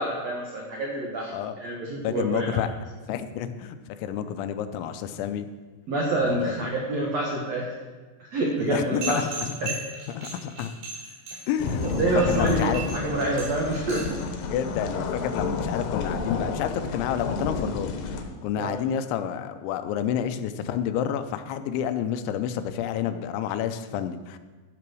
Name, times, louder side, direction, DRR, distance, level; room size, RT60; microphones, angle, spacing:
voice 1, 0.0-2.6 5.9-7.7 8.2-9.3 9.6-9.7 12.0-14.2 18.6-18.8, right 2 dB, 75° right, -2 dB, 1.5 m, -27 dB
voice 2, 2.0-2.7 3.1-5.5 6.2-6.5 8.6-9.8 10.1-10.7 11.5-12.8 14.5-18.1 18.4-24.4, left 9 dB, 85° left, 10 dB, 3.0 m, -29 dB
sound 1, 9.0-14.2, right 3 dB, 55° right, 6.3 m, -36 dB
sound 2, 11.6-18.2, left 4 dB, 70° left, 2.5 m, -30 dB
14.5 x 6.0 x 6.2 m, 1.3 s
omnidirectional pair, 5.2 m